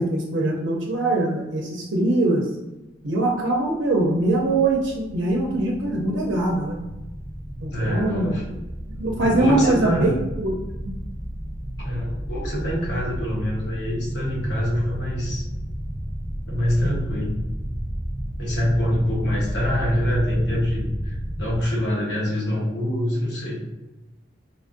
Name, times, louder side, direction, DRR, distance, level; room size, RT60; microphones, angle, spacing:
voice 1, 0.0-2.5 3.0-6.8 7.6-8.4 9.0-10.6 16.8-17.0, right 2 dB, 85° right, -2 dB, 0.6 m, -22 dB
sound 1, 3.6-21.7, equal, 10° right, 0.3 m, -32 dB
voice 2, 7.7-8.5 9.2-10.2 11.8-15.4 16.5-17.4 18.4-23.6, equal, 65° left, -5 dB, 1.1 m, -25 dB
4.4 x 2.5 x 2.6 m, 1.0 s
head